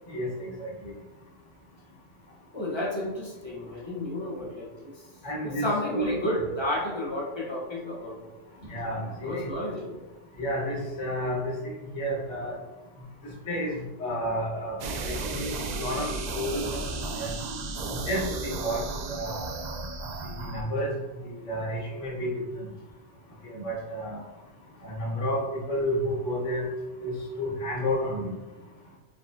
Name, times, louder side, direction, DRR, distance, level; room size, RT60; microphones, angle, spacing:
voice 1, 0.1-0.7 5.2-5.7 5.9-6.1 8.7-9.5 10.4-11.5 11.9-12.5 13.5-13.7 14.0-14.7 15.0-15.5 15.8-16.1 16.3-16.8 17.2-17.3 18.1-18.8 19.1-19.5 20.5-20.9 21.4-22.3 23.5-24.2 24.8-26.6 27.0-28.3, equal, 75° left, -4 dB, 1.5 m, -30 dB
voice 2, 2.5-5.0 5.4-8.2 9.2-10.0 18.4-18.7, left 1 dB, 25° left, -5 dB, 0.8 m, -32 dB
sound 1, 14.8-20.6, right 3 dB, 70° right, 0.4 m, -34 dB
4.6 x 3.7 x 2.5 m, 1.1 s
omnidirectional pair, 1.2 m